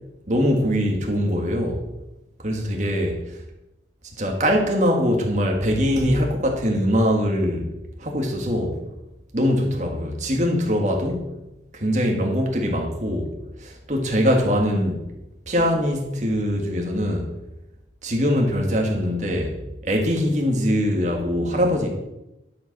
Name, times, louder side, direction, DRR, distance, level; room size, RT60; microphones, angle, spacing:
voice 1, 0.3-1.8 2.4-3.2 4.2-7.7 8.0-8.8 9.3-11.2 11.7-13.3 13.6-15.0 15.5-17.3 18.0-21.9, equal, 40° right, 1.8 m, -22 dB
11.5 x 5.2 x 6.0 m
head